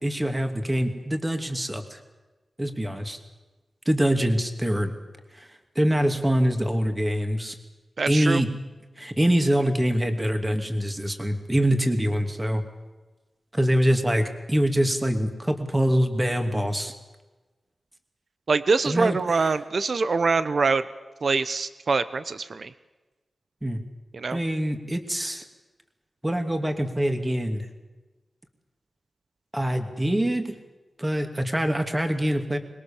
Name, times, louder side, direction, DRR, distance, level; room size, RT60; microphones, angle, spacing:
voice 1, 0.0-2.0 2.6-3.2 3.9-4.9 5.3-5.5 5.7-7.6 8.1-8.5 9.0-12.6 13.5-16.9 18.8-19.2 23.6-23.8 24.3-25.4 26.2-27.7 29.5-30.5 31.0-32.6, equal, 15° right, 6 dB, 2.7 m, -24 dB
voice 2, 8.0-8.4 18.5-20.8 21.2-22.7 24.1-24.4, right 4 dB, 60° right, 13 dB, 0.9 m, -24 dB
25.0 x 21.5 x 7.3 m, 1.2 s
wide cardioid pair, 105°, 0 cm